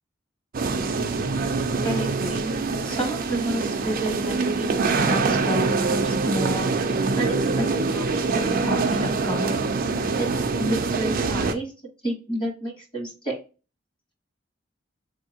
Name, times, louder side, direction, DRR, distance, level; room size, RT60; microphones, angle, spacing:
sound 1, 0.5-11.5, right 4 dB, 45° right, 0.5 m, -24 dB
voice 1, 1.8-2.5 2.8-9.6 10.2-11.7 12.0-13.3, equal, 25° left, 2 dB, 1.3 m, -31 dB
3.8 x 2.7 x 2.8 m, 0.33 s
head